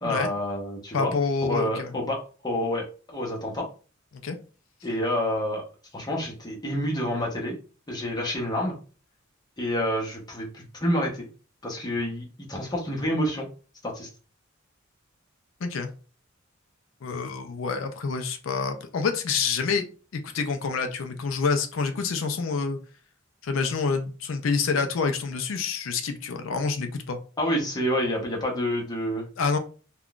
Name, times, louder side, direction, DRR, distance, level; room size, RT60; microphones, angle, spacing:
voice 1, 0.0-1.1 1.4-3.7 4.8-5.6 5.9-7.6 7.9-8.8 9.6-11.3 11.6-13.5 13.8-14.1 27.4-29.3, equal, 20° left, -2 dB, 0.9 m, -28 dB
voice 2, 0.9-2.0 4.2-4.4 15.6-15.9 17.0-19.8 20.1-22.8 23.4-27.2 29.4-29.6, left 5 dB, 70° left, 7 dB, 0.4 m, -27 dB
3.6 x 2.3 x 2.4 m, 0.37 s
head